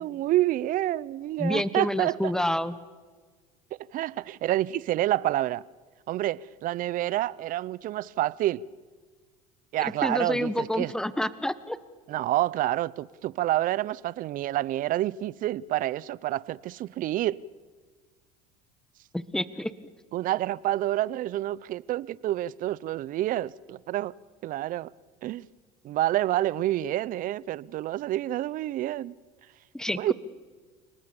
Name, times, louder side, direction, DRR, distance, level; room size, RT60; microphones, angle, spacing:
voice 1, 0.0-2.4 3.9-5.6 6.1-8.6 9.7-10.9 12.1-17.4 20.1-24.1 24.4-24.9 25.2-25.5 25.8-29.1 29.9-30.1, right 14 dB, 50° right, 21 dB, 0.7 m, -28 dB
voice 2, 1.4-2.7 10.0-11.8 19.1-19.7 29.7-30.1, left 1 dB, 5° left, 14 dB, 1.2 m, -28 dB
29.0 x 19.5 x 7.2 m, 1.5 s
supercardioid pair, 90°, 18 cm